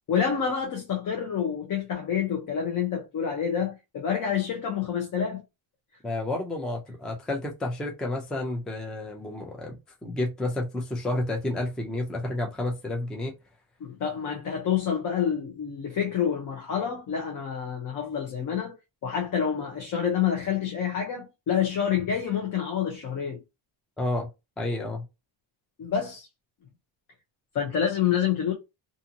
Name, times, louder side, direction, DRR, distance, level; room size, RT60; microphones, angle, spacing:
voice 1, 0.1-5.4 13.8-18.8 19.0-23.4 25.8-26.3 27.5-28.5, left 8 dB, 45° left, 0.7 m, -28 dB
voice 2, 6.0-13.3 24.0-24.3 24.6-25.0, left 2 dB, ahead, 0.3 m, -30 dB
2.6 x 2.6 x 2.6 m
cardioid pair, 170°, 46 cm